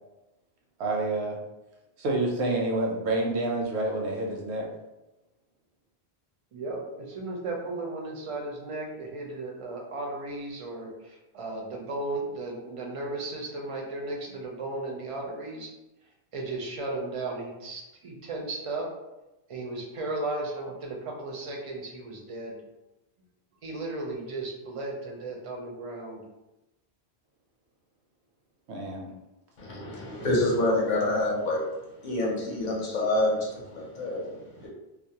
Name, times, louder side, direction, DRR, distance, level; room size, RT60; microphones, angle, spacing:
voice 1, 0.8-1.4 2.0-4.7 28.7-29.1, right 2 dB, 85° right, 0 dB, 0.8 m, -28 dB
voice 2, 6.5-15.7 16.3-18.9 19.5-22.6 23.6-26.2, right 2 dB, 50° right, 0 dB, 0.4 m, -35 dB
voice 3, 29.6-31.6 32.0-34.7, left 1 dB, 50° left, -4 dB, 0.7 m, -27 dB
2.3 x 2.0 x 2.7 m, 0.98 s
omnidirectional pair, 1.1 m